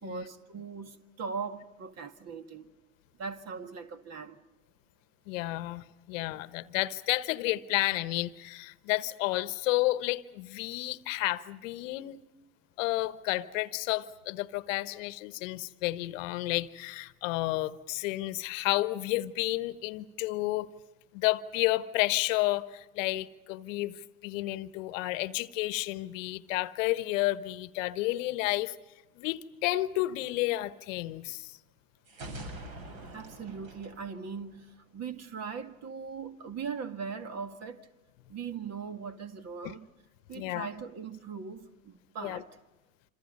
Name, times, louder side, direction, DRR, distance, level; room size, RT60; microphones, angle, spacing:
voice 1, 0.0-2.7 3.2-4.4 33.1-37.9 38.3-39.9 40.3-42.5, right 6 dB, 35° right, 2.0 m, -40 dB
voice 2, 5.3-12.2 12.8-20.7 21.1-28.8 29.2-31.5 39.6-39.7 40.3-40.7 42.2-42.4, left 18 dB, 60° left, 1.2 m, -31 dB
sound 1, 32.1-34.9, right 1 dB, 55° right, 7.5 m, -44 dB
27.5 x 27.0 x 5.5 m
hypercardioid pair, 90°, 44 cm